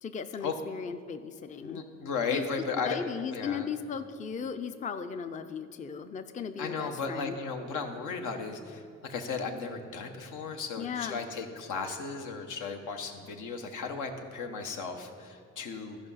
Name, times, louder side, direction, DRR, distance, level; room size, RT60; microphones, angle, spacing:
voice 1, 0.0-1.8 2.3-2.5 2.8-7.4 10.8-11.2, left 6 dB, 25° left, 9 dB, 0.4 m, -37 dB
voice 2, 1.6-3.0 3.3-3.7 6.6-16.0, left 5 dB, 80° left, 5 dB, 1.0 m, -35 dB
13.5 x 5.0 x 5.5 m, 2.4 s
cardioid pair, 90°, 30 cm